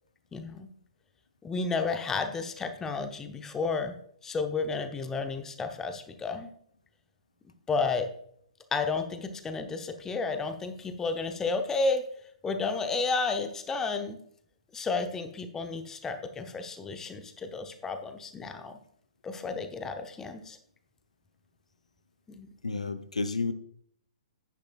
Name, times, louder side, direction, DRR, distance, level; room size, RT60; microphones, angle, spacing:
voice 1, 0.3-0.7 1.4-3.9 4.2-6.5 7.7-8.1 8.7-12.1 12.4-14.2 14.7-18.8 19.2-20.6 22.4-22.5, left 4 dB, 10° left, 7 dB, 0.9 m, -32 dB
voice 2, 22.6-23.5, left 3 dB, 75° left, 12 dB, 0.7 m, -31 dB
9.9 x 9.8 x 2.5 m, 0.64 s
figure-of-eight pair, 115°, 4 cm